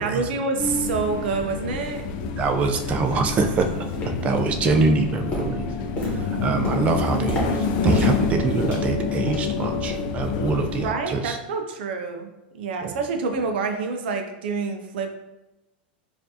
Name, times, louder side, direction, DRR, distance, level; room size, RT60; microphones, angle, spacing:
voice 1, 0.0-2.0 10.8-12.3 12.5-15.2, right 4 dB, 75° right, 5 dB, 0.5 m, -27 dB
sound 1, 0.6-10.9, left 4 dB, 55° left, 0.4 m, -28 dB
sound 2, 1.3-1.4 1.9-2.0 2.6-2.7 3.3-3.6 3.9-4.4 4.7-9.6 9.9-10.2 10.5-10.7 11.3-11.4, equal, 25° left, 1.2 m, -32 dB
voice 2, 2.4-11.4 12.8-12.9, right 3 dB, 25° right, 5 dB, 0.4 m, -25 dB
4.5 x 2.5 x 2.7 m, 0.97 s
supercardioid pair, 140°, 5 cm